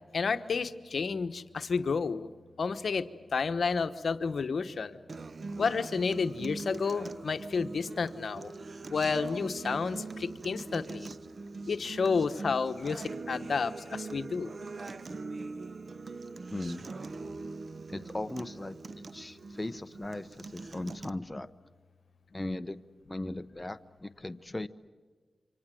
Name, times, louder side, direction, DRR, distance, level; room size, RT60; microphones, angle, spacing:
voice 1, 0.1-2.3 2.6-5.0 5.6-8.5 8.9-11.1 11.7-14.5, left 5 dB, 70° left, 10 dB, 1.1 m, -31 dB
Acoustic guitar, 5.1-21.1, right 3 dB, 55° right, 1.0 m, -42 dB
voice 2, 16.5-16.8 17.9-18.8 19.1-21.5 22.3-22.8 23.1-24.7, left 2 dB, 20° left, 10 dB, 0.9 m, -38 dB
28.5 x 25.0 x 7.7 m, 1.5 s
cardioid pair, 55°, 0 cm